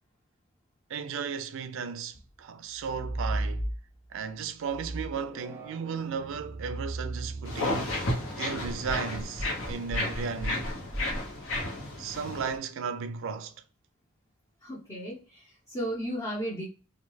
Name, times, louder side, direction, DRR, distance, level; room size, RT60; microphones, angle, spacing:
voice 1, 0.9-3.7 4.1-7.9 8.4-10.7 12.0-13.5, right 6 dB, 60° right, 0.4 m, -35 dB
sound 1, 2.7-4.1 4.7-11.6, right 1 dB, 10° right, 0.5 m, -36 dB
sound 2, 7.4-12.6, left 2 dB, 65° left, 0.8 m, -33 dB
voice 2, 14.6-16.7, equal, 20° left, 0.8 m, -35 dB
2.3 x 2.2 x 3.0 m
head